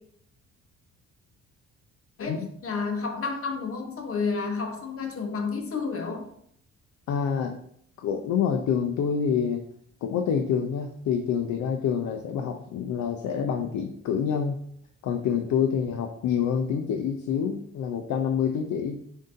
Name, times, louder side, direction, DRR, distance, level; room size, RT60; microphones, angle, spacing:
voice 1, 2.2-6.3, left 4 dB, 50° left, 4 dB, 1.0 m, -30 dB
voice 2, 7.1-7.6 8.0-9.6 10.0-14.6 15.0-19.0, left 7 dB, 70° left, 4 dB, 0.5 m, -27 dB
7.3 x 2.7 x 2.6 m, 0.68 s
cardioid pair, 90°, 30 cm